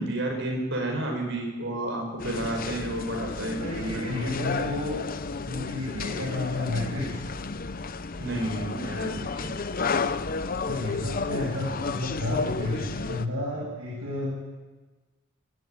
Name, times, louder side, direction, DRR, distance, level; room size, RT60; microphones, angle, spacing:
voice 1, 0.0-4.0 8.2-9.5, right 1 dB, 60° right, 1 dB, 5.7 m, -31 dB
sound 1, 2.2-13.3, left 4 dB, 40° left, 0.7 m, -32 dB
voice 2, 3.6-5.0 5.3-7.2 10.5-14.3, left 2 dB, 85° right, -6 dB, 7.6 m, -31 dB
22.0 x 13.0 x 9.5 m, 1.3 s
head